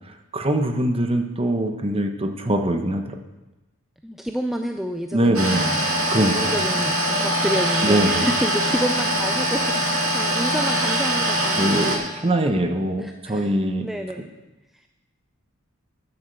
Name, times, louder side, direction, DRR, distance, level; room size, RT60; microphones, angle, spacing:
voice 1, 0.3-3.2 5.1-5.7 6.1-6.5 7.8-8.3 11.6-13.9, right 1 dB, 25° right, 6 dB, 1.0 m, -22 dB
voice 2, 4.0-5.9 6.2-12.0 13.0-13.5 13.8-14.3 14.7-14.9, equal, ahead, 5 dB, 0.4 m, -29 dB
sound 1, 5.3-12.0, right 1 dB, 80° right, 2.5 m, -22 dB
10.5 x 7.7 x 6.8 m, 1.0 s
head